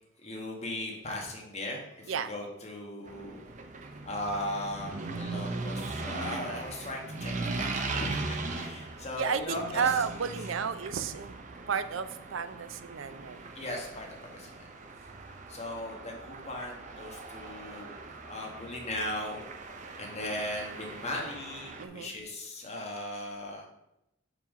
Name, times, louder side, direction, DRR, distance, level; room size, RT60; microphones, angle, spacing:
voice 1, 0.2-3.4 4.0-9.9 13.5-14.7 15.5-17.9 18.2-19.4 20.0-23.6, left 1 dB, 35° left, 0 dB, 1.5 m, -38 dB
sound 1, 3.1-21.9, right 3 dB, 40° right, 0.7 m, -39 dB
voice 2, 9.2-11.3 11.7-13.4 21.8-22.1, right 6 dB, 75° right, 11 dB, 0.5 m, -32 dB
5.6 x 4.8 x 5.1 m, 0.86 s
head